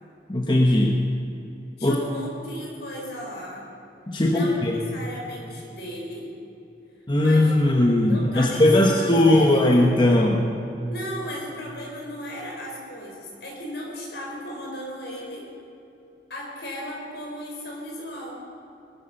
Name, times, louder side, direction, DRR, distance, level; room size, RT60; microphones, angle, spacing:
voice 1, 0.3-1.0 1.8-2.0 4.1-4.8 7.1-10.5, left 1 dB, 25° left, 1 dB, 1.1 m, -19 dB
voice 2, 1.8-3.6 4.2-4.6 4.9-6.3 7.1-9.6 10.9-15.5 16.3-18.3, equal, 70° left, -2 dB, 5.0 m, -35 dB
20.0 x 12.5 x 5.6 m, 2.8 s
head